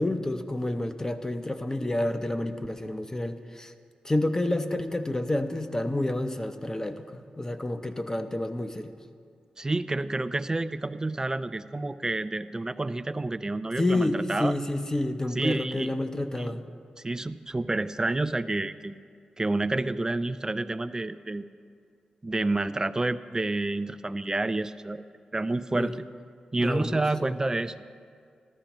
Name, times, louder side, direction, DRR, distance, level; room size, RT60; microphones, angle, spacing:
voice 1, 0.0-3.7 4.0-8.9 13.8-16.6 25.7-25.9 26.6-26.9 27.2-27.4, left 1 dB, 20° left, 8 dB, 0.7 m, -29 dB
voice 2, 9.6-14.5 15.4-16.0 16.4-16.6 17.0-18.9 19.4-21.4 22.2-25.0 25.3-26.0 26.5-27.7, right 2 dB, 25° right, 13 dB, 0.4 m, -29 dB
14.0 x 13.0 x 3.0 m, 2.2 s
cardioid pair, 50°, 3 cm